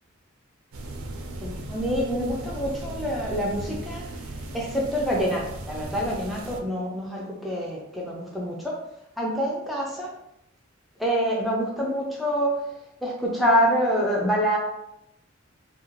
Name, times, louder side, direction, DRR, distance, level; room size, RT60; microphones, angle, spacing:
sound 1, 0.7-6.6, right 2 dB, 85° right, 0.4 m, -37 dB
voice 1, 1.4-4.0 4.5-8.8 9.2-10.1 11.0-12.6 13.0-14.6, equal, ahead, -4 dB, 0.3 m, -26 dB
2.5 x 2.4 x 3.0 m, 0.83 s
head